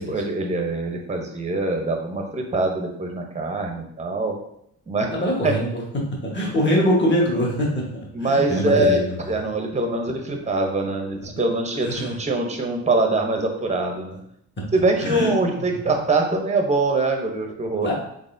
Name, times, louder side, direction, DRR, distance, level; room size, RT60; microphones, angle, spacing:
voice 1, 0.0-4.4 4.9-5.2 5.4-5.6 8.1-9.0 9.3-14.2 14.7-17.9, right 2 dB, 15° right, 3 dB, 0.7 m, -23 dB
voice 2, 5.1-5.8 6.2-9.2 11.8-12.2 15.0-15.3 15.6-15.9 17.8-17.9, equal, 25° left, -3 dB, 1.2 m, -23 dB
3.9 x 3.5 x 2.6 m, 0.74 s
cardioid pair, 85°, 41 cm